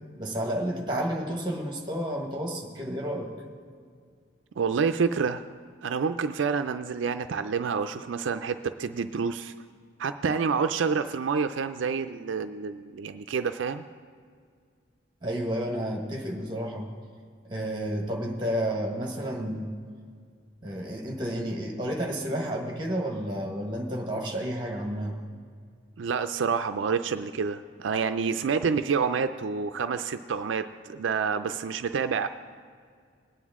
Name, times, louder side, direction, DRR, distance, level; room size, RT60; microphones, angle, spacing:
voice 1, 0.2-3.3 15.2-16.9 17.5-19.7 20.6-25.2, equal, 25° right, 2 dB, 1.4 m, -31 dB
voice 2, 4.6-5.4 5.8-9.5 10.0-13.8 26.0-32.3, right 5 dB, 75° right, 9 dB, 0.4 m, -28 dB
20.5 x 9.1 x 3.6 m, 2.1 s
head